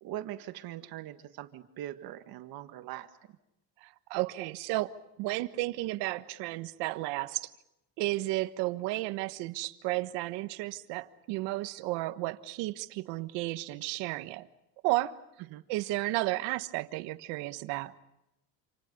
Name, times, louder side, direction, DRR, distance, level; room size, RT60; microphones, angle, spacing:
voice 1, 0.0-3.1 15.5-15.6, right 13 dB, 55° right, 1.8 m, -41 dB
voice 2, 3.8-7.5 8.0-14.5 14.8-15.2 15.7-17.9, right 18 dB, 70° right, 1.5 m, -33 dB
28.5 x 28.0 x 5.4 m
cardioid pair, 140°, 43 cm